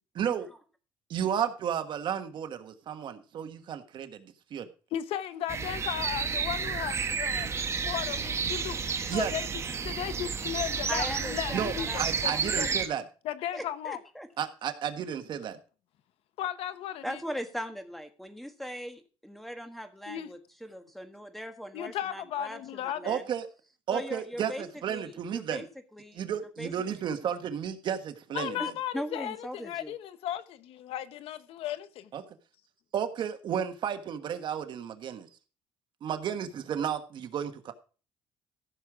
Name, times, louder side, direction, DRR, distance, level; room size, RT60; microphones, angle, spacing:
voice 1, 0.1-0.5 1.1-4.7 9.1-9.3 11.5-13.0 14.4-15.6 23.1-23.5 23.9-25.6 26.1-28.6 32.1-32.2 32.9-35.3 36.0-37.7, right 8 dB, 50° right, 1.3 m, -33 dB
voice 2, 4.9-7.5 7.8-8.8 9.1-9.5 9.8-12.7 13.2-14.0 16.4-17.2 20.1-20.3 21.7-23.1 28.3-32.1, left 11 dB, 70° left, 0.9 m, -35 dB
sound 1, 5.5-12.9, right 5 dB, 25° right, 1.3 m, -31 dB
voice 3, 10.9-12.6 13.5-14.3 17.0-23.3 23.9-25.7 25.9-27.0 28.6-29.9, equal, ahead, 1.4 m, -40 dB
14.5 x 6.4 x 5.0 m
cardioid pair, 140°, 10 cm